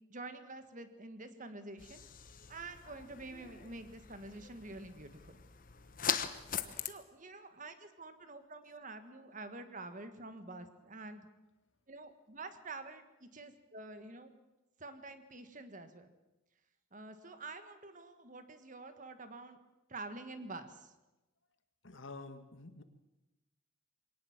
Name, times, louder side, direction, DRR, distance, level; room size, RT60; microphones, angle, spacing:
voice 1, 0.1-2.1 2.5-5.4 6.8-11.3 11.9-14.4 14.8-16.1 16.9-19.6 19.9-20.9, right 2 dB, 40° right, 9 dB, 1.7 m, -48 dB
sound 1, 1.8-6.9, left 8 dB, 40° left, 1.1 m, -41 dB
voice 2, 21.8-22.8, left 3 dB, 65° left, 9 dB, 1.8 m, -48 dB
23.0 x 18.5 x 7.4 m, 1.0 s
head